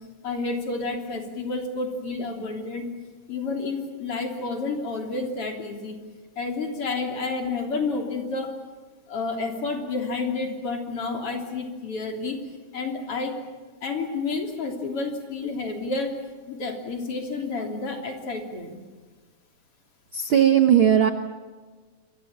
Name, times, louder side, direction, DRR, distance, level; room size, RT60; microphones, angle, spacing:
voice 1, 0.2-2.9 3.3-6.0 6.4-8.5 9.1-12.4 12.7-13.3 13.8-16.1 16.5-18.8, left 3 dB, 40° left, 3 dB, 3.9 m, -30 dB
voice 2, 20.1-21.1, right 9 dB, 85° right, 8 dB, 1.1 m, -17 dB
29.0 x 23.0 x 7.4 m, 1.4 s
omnidirectional pair, 3.9 m